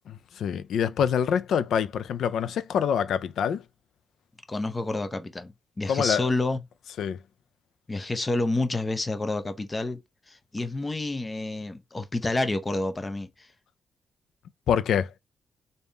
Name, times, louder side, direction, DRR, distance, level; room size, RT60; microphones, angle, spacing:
voice 1, 0.4-3.6 5.9-6.3 7.0-7.2 14.7-15.1, left 8 dB, 85° left, 0.4 m, -25 dB
voice 2, 4.5-6.6 7.9-10.0 10.3-13.5, left 2 dB, 25° left, 0.6 m, -29 dB
3.5 x 2.7 x 3.3 m
cardioid pair, 90°, 0 cm